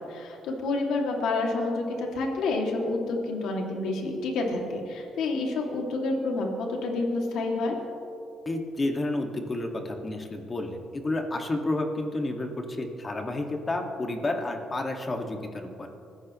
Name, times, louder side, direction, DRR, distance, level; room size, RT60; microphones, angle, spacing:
voice 1, 0.1-7.8, left 2 dB, 85° left, 0 dB, 2.5 m, -29 dB
voice 2, 8.5-15.9, left 2 dB, 30° left, 3 dB, 2.0 m, -30 dB
25.5 x 14.0 x 3.2 m, 2.6 s
cardioid pair, 90°, 0 cm